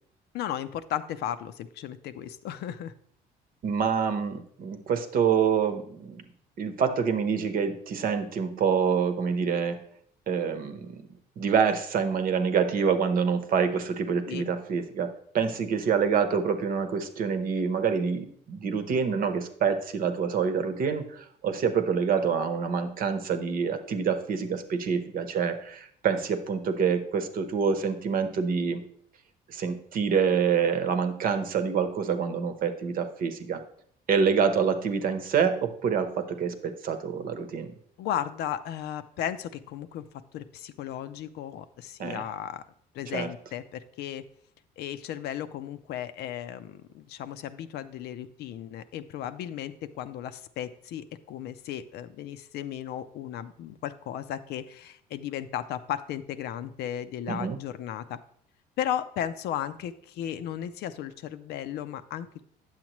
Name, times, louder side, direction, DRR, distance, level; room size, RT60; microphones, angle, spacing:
voice 1, 0.3-2.9 14.3-14.5 38.0-40.1 40.3-42.6 42.9-44.2 44.8-58.2 58.8-62.4, left 10 dB, 75° left, 12 dB, 0.5 m, -35 dB
voice 2, 3.6-6.2 6.6-9.8 10.3-11.1 11.4-15.1 15.3-28.8 29.5-33.6 34.1-37.7 42.0-42.2 43.1-43.3 57.3-57.6, right 6 dB, 55° right, 8 dB, 0.9 m, -26 dB
9.0 x 7.2 x 3.0 m, 0.64 s
cardioid pair, 110°, 17 cm